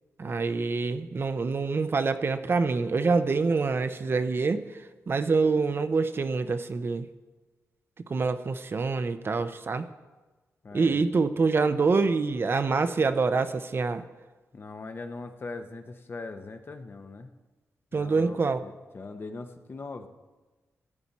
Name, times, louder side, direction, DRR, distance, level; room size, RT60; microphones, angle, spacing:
voice 1, 0.2-4.6 5.1-7.1 8.1-9.9 10.7-14.0 17.9-18.6, right 4 dB, 45° right, 10 dB, 0.6 m, -26 dB
voice 2, 10.6-11.1 14.5-17.3 17.9-20.1, left 3 dB, 45° left, 7 dB, 0.9 m, -41 dB
14.5 x 8.7 x 4.2 m, 1.2 s
cardioid pair, 85°, 5 cm